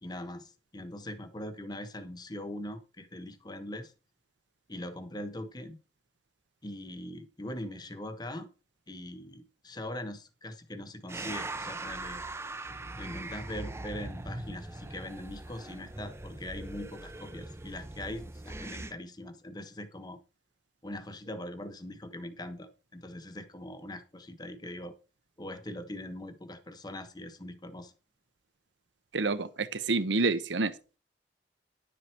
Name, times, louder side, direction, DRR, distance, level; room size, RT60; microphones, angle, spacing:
voice 1, 0.0-3.9 4.7-5.8 6.6-8.5 8.9-12.2 13.0-20.2 20.8-24.9 25.4-27.9, left 1 dB, 20° left, 1.2 m, -41 dB
sound 1, 11.1-18.9, right 2 dB, 15° right, 0.6 m, -41 dB
voice 2, 29.1-30.7, right 3 dB, 75° right, 0.9 m, -28 dB
11.0 x 7.9 x 4.6 m
head